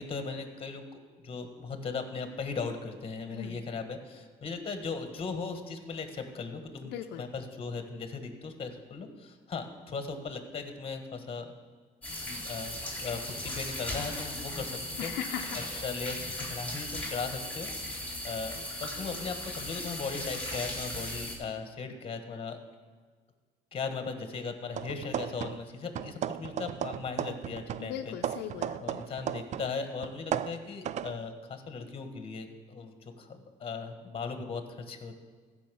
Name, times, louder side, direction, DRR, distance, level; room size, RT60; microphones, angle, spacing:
voice 1, 0.0-11.5 12.2-12.7 13.0-15.1 15.5-18.5 18.8-22.6 23.7-28.1 28.8-35.1, left 4 dB, 35° left, 7 dB, 1.5 m, -38 dB
voice 2, 6.8-7.3 15.0-15.6 16.1-16.2 27.8-29.0, left 10 dB, 80° left, 5 dB, 0.6 m, -38 dB
sound 1, 12.0-21.4, left 1 dB, 10° left, 3.7 m, -37 dB
sound 2, 24.7-25.7 26.0-29.7 30.0-31.2, right 9 dB, 45° right, 0.4 m, -35 dB
14.5 x 5.5 x 6.9 m, 1.5 s
cardioid pair, 110°, 17 cm